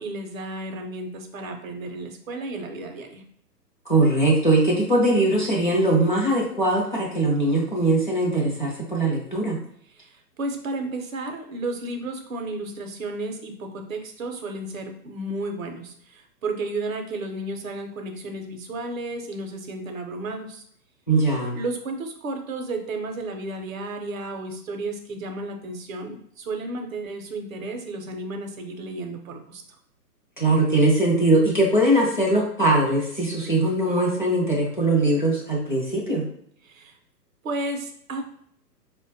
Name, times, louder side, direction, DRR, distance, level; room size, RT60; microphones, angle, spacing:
voice 1, 0.0-3.2 8.4-8.6 9.9-20.6 21.5-29.6 36.6-37.0 37.4-38.2, right 2 dB, 55° right, 4 dB, 0.6 m, -33 dB
voice 2, 3.9-9.6 21.1-21.6 30.4-36.2, right 2 dB, 30° left, -4 dB, 0.5 m, -21 dB
4.3 x 2.1 x 2.6 m, 0.66 s
hypercardioid pair, 180°, 50 cm